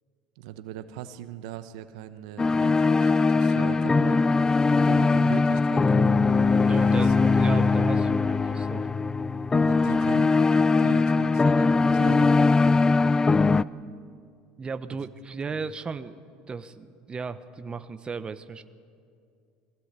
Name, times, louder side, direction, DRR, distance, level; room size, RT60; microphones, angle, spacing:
voice 1, 0.4-4.2 4.8-6.2 7.0-7.1 9.5-12.6 14.9-15.1 15.5-15.6, right 11 dB, 80° right, 11 dB, 1.0 m, -40 dB
sound 1, 2.4-13.6, left 4 dB, 20° left, 0.4 m, -21 dB
voice 2, 6.5-8.9 14.6-16.2 16.5-18.6, right 5 dB, 25° right, 11 dB, 0.9 m, -35 dB
22.5 x 17.0 x 8.2 m, 2.3 s
supercardioid pair, 90°, 4 cm